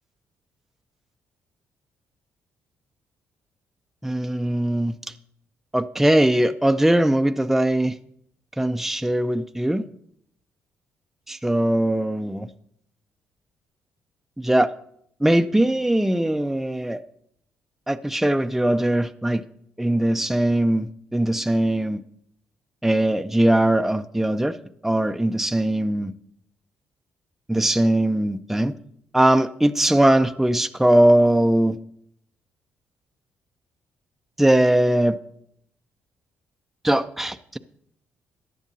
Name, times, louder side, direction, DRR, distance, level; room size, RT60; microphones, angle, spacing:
voice 1, 4.0-4.9 5.7-8.0 8.6-9.8 11.3-12.5 14.4-14.7 15.2-17.0 17.9-19.4 19.8-22.0 22.8-24.6 24.8-26.1 27.5-28.7 29.1-31.8 34.4-35.2 36.8-37.6, right 1 dB, 5° right, 9 dB, 0.5 m, -20 dB
15.0 x 10.0 x 2.7 m, 0.71 s
supercardioid pair, 60°, 5 cm